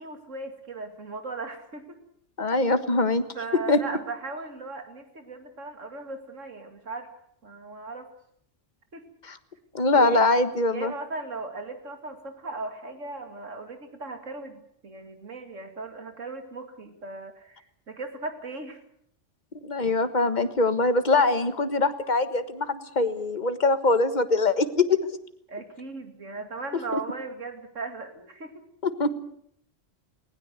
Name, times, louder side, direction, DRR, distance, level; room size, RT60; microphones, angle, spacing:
voice 1, 0.0-2.0 3.3-7.1 7.4-8.1 8.9-9.0 9.9-18.8 25.5-28.6, right 3 dB, 90° right, 6 dB, 2.8 m, -37 dB
voice 2, 2.4-3.2 3.7-3.8 9.2-9.4 9.7-10.9 19.6-25.0 28.8-29.1, left 3 dB, 35° left, 10 dB, 1.6 m, -23 dB
19.5 x 19.5 x 8.1 m, 0.69 s
omnidirectional pair, 1.3 m